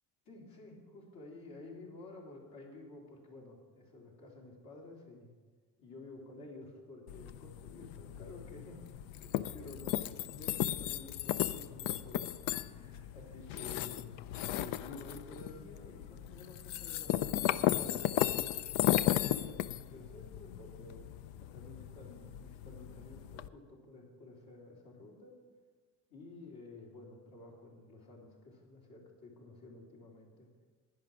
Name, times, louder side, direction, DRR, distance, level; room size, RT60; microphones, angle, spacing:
voice 1, 0.3-5.3 5.8-8.8 9.2-12.3 12.6-14.1 14.5-25.4 26.1-30.7, left 2 dB, 55° left, -2 dB, 3.6 m, -52 dB
sound 1, 7.1-23.5, left 13 dB, 90° left, 0.6 m, -35 dB
11.0 x 10.5 x 6.1 m, 1.4 s
cardioid pair, 135°, 40 cm